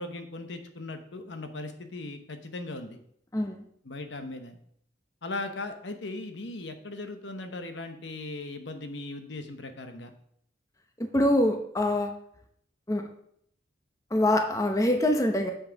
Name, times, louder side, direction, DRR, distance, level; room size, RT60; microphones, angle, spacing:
voice 1, 0.0-3.0 3.8-4.6 5.2-10.1, left 2 dB, 65° left, 7 dB, 1.0 m, -38 dB
voice 2, 3.3-3.6 11.0-12.1 12.9-13.0 14.1-15.5, left 1 dB, 15° left, 4 dB, 0.7 m, -24 dB
7.3 x 6.3 x 5.1 m, 0.68 s
head